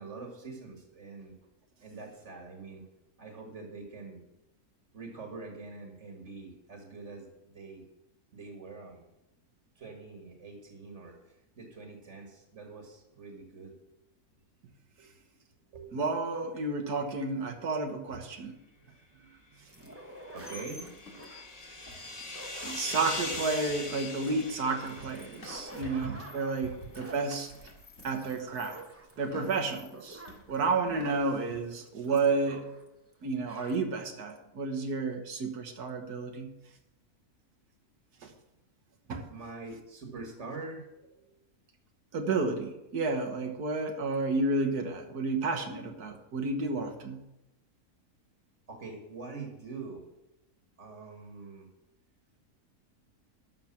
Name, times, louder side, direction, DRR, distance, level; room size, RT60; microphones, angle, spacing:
voice 1, 0.0-1.3 1.8-2.9 3.2-4.2 4.9-7.3 7.5-7.8 8.3-9.1 9.8-13.7 15.0-15.1 15.7-15.9 16.4-16.5 18.8-19.3 20.3-20.8 25.8-26.1 39.3-41.3 48.7-50.0 50.8-51.7, right 3 dB, 50° right, 2 dB, 1.9 m, -44 dB
voice 2, 15.9-18.6 22.6-27.5 28.0-28.8 29.2-30.2 30.5-32.7 33.2-36.5 38.2-38.3 39.1-39.3 42.1-47.2, right 3 dB, 80° right, 5 dB, 1.7 m, -31 dB
sound 1, 19.7-32.9 33.1-33.2 33.4-33.8, right 1 dB, 10° right, 0.9 m, -50 dB
sound 2, 20.0-24.6 24.9-31.3, left 2 dB, 55° left, 2.4 m, -51 dB
sound 3, 20.3-25.9, left 2 dB, 25° left, 1.8 m, -41 dB
12.0 x 6.8 x 5.9 m, 0.90 s
omnidirectional pair, 1.6 m